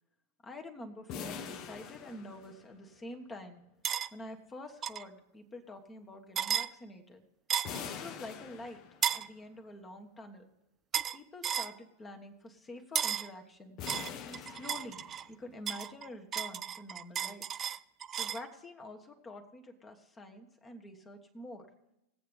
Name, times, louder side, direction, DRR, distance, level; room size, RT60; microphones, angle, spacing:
voice 1, 0.4-3.7 4.1-7.2 7.9-8.8 9.1-10.5 11.1-13.8 14.2-17.5 18.2-21.7, left 1 dB, 20° left, 4 dB, 1.3 m, -47 dB
sound 1, 1.1-3.0 7.7-9.3 13.8-15.4, left 7 dB, 40° left, 0.9 m, -44 dB
sound 2, 3.8-4.1 4.8-5.1 6.4-6.7 7.5-7.8 9.0-9.3 10.9-11.2 11.4-11.7 13.0-13.3 13.9-15.3 15.7-18.5, right 9 dB, 25° right, 0.4 m, -34 dB
20.0 x 7.9 x 3.4 m, 0.86 s
figure-of-eight pair, 90°, 0 cm